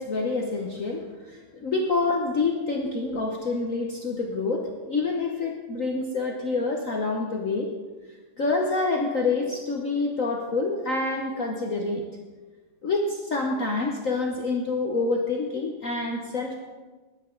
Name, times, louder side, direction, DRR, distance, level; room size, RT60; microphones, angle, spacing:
voice 1, 0.0-7.7 8.4-12.1 12.8-16.6, left 3 dB, 50° left, 0 dB, 1.2 m, -27 dB
20.5 x 9.0 x 3.8 m, 1.3 s
omnidirectional pair, 2.3 m